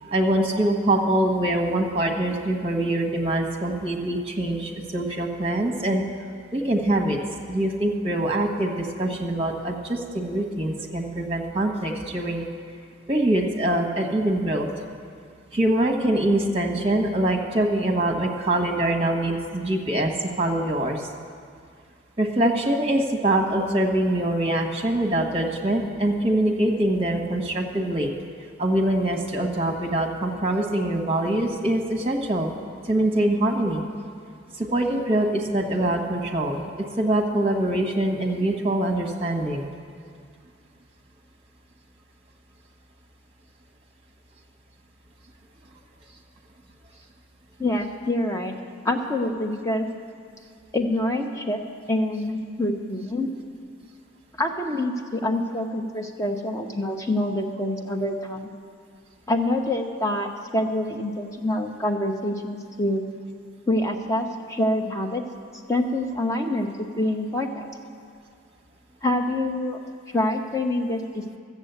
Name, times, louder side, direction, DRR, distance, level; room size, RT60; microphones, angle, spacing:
voice 1, 0.0-6.0 6.5-7.2 7.5-12.4 13.1-14.7 15.5-20.1 20.4-21.1 22.2-28.1 28.6-32.5 32.9-33.8 34.6-39.7, right 1 dB, 30° right, 1 dB, 1.3 m, -24 dB
voice 2, 47.6-48.6 48.8-49.9 50.7-51.6 51.9-53.3 54.4-58.5 59.3-63.0 63.7-65.2 65.7-67.7 69.0-69.8 70.1-71.4, left 1 dB, 15° left, 2 dB, 0.9 m, -26 dB
13.5 x 7.4 x 8.0 m, 2.2 s
head